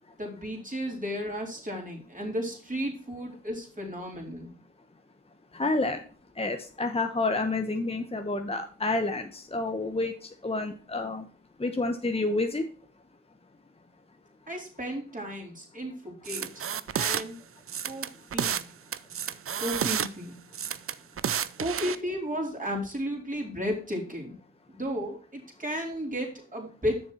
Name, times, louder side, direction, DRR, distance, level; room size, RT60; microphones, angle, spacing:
voice 1, 0.2-4.5 14.5-17.4 17.8-18.7 19.6-20.4 21.6-24.3 24.7-27.0, equal, 25° right, 0 dB, 4.0 m, -34 dB
voice 2, 5.5-6.0 6.4-11.2 11.6-12.6, left 2 dB, 20° left, 6 dB, 1.1 m, -29 dB
sound 1, 16.3-17.2 17.7-18.7 18.9-20.1 20.5-22.0, right 8 dB, 45° right, 0.5 m, -30 dB
6.9 x 6.5 x 4.5 m, 0.39 s
supercardioid pair, 40°, 31 cm